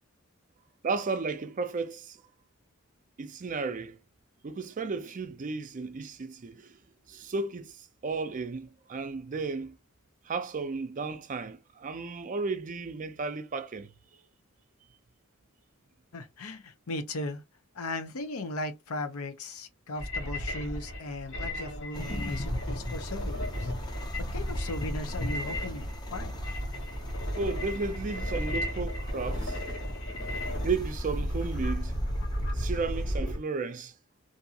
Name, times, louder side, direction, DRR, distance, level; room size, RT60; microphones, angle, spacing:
voice 1, 0.8-2.2 3.2-4.0 4.4-6.8 7.1-9.8 10.2-13.9 22.6-22.7 27.4-29.6 30.6-31.9 32.5-33.9, right 4 dB, 35° right, 0.4 m, -34 dB
voice 2, 16.1-17.4 17.7-23.7 24.2-26.4, left 2 dB, 85° left, 0.6 m, -37 dB
sound 1, 19.9-33.4, equal, 60° left, 1.2 m, -34 dB
sound 2, 21.9-33.2, left 1 dB, 20° left, 0.5 m, -38 dB
2.6 x 2.4 x 2.7 m
head